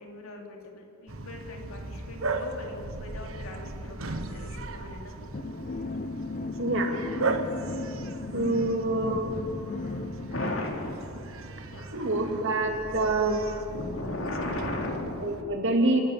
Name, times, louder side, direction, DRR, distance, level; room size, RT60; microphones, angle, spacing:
voice 1, 0.0-5.3 10.3-11.1 11.7-12.1 13.7-15.2, left 2 dB, 85° left, 1 dB, 3.3 m, -37 dB
Bark, 1.1-15.4, right 3 dB, 80° right, 1.3 m, -37 dB
sound 1, 5.3-10.7, left 3 dB, 40° left, 0.7 m, -36 dB
voice 2, 6.6-7.2 8.3-9.4 11.9-13.5 15.2-16.0, right 2 dB, 60° right, 2 dB, 2.7 m, -26 dB
28.0 x 11.0 x 8.8 m, 2.6 s
head